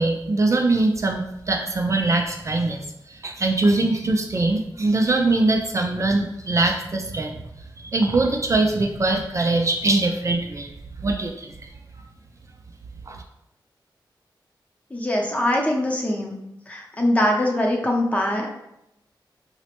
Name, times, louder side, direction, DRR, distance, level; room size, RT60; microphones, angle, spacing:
voice 1, 0.0-2.8 3.1-7.4 7.8-10.7 11.0-11.7 13.1-13.2, right 2 dB, 40° right, 2 dB, 0.3 m, -22 dB
voice 2, 14.9-16.4 16.7-18.5, left 1 dB, 15° left, -1 dB, 0.6 m, -22 dB
3.9 x 2.1 x 2.9 m, 0.83 s
wide cardioid pair, 80°, 8 cm